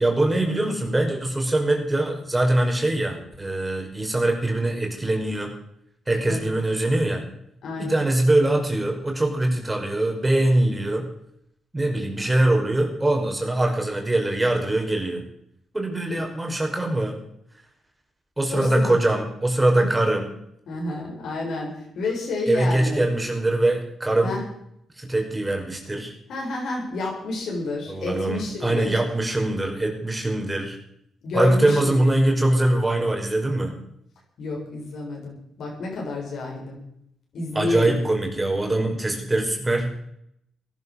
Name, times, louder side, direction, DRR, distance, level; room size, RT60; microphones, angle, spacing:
voice 1, 0.0-5.5 6.1-7.2 7.8-11.1 11.7-15.2 15.7-17.2 18.4-20.3 22.5-24.4 25.0-26.1 27.9-30.8 31.3-33.8 37.5-39.9, right 1 dB, 20° right, 2 dB, 5.4 m, -22 dB
voice 2, 7.6-8.1 16.1-16.2 18.5-19.0 19.7-19.9 20.7-23.0 24.2-24.4 26.3-29.0 31.2-32.1 34.4-36.8 37.3-38.0, left 3 dB, 70° left, -1 dB, 7.7 m, -30 dB
17.5 x 11.5 x 6.6 m, 0.75 s
supercardioid pair, 55°, 0 cm